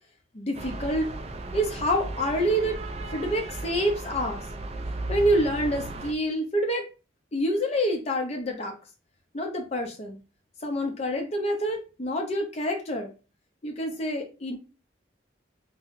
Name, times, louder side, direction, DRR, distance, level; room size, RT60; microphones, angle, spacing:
voice 1, 0.3-1.1 1.5-2.8 3.1-4.5 5.1-6.9 7.3-8.8 9.3-10.2 10.6-13.1 13.6-14.6, equal, 35° left, 2 dB, 0.6 m, -27 dB
sound 1, 0.5-6.1, right 2 dB, 35° right, 0.3 m, -35 dB
5.4 x 2.1 x 2.5 m, 0.32 s
head